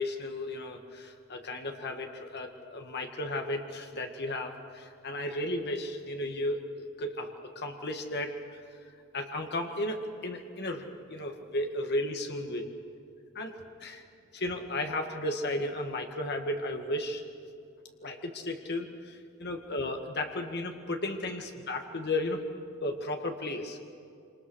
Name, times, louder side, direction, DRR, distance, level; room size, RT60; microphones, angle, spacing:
voice 1, 0.0-8.4 9.1-12.7 13.4-13.5 13.8-14.0 14.3-17.2 18.0-22.4 22.8-23.8, left 1 dB, 50° left, 4 dB, 2.0 m, -34 dB
27.0 x 27.0 x 6.4 m, 2.4 s
head